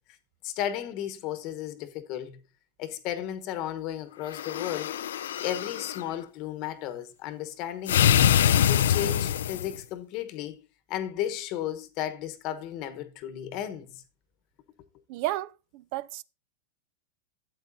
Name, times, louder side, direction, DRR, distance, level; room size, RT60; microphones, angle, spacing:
voice 1, 0.4-2.4 2.8-5.0 5.4-8.2 8.7-14.0, left 11 dB, 45° left, 1.0 m, -34 dB
sound 1, 4.3-6.0 7.9-9.8, left 10 dB, 85° left, 0.3 m, -24 dB
voice 2, 15.1-16.2, right 16 dB, 50° right, 0.3 m, -33 dB
12.0 x 8.2 x 2.6 m
supercardioid pair, 140°, 0 cm